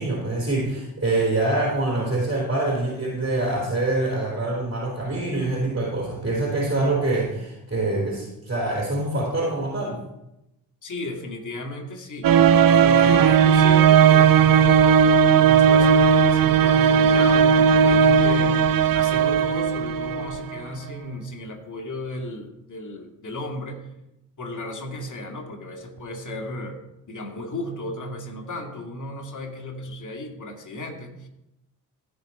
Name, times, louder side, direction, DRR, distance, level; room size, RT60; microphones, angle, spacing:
voice 1, 0.0-10.0, right 2 dB, 25° right, -3 dB, 3.9 m, -25 dB
voice 2, 10.8-18.6 18.9-23.8 24.4-31.3, left 1 dB, 40° left, 2 dB, 2.4 m, -35 dB
sound 1, 12.2-20.6, right 7 dB, 45° right, 0.7 m, -16 dB
15.5 x 5.2 x 4.4 m, 0.88 s
hypercardioid pair, 40°, 48 cm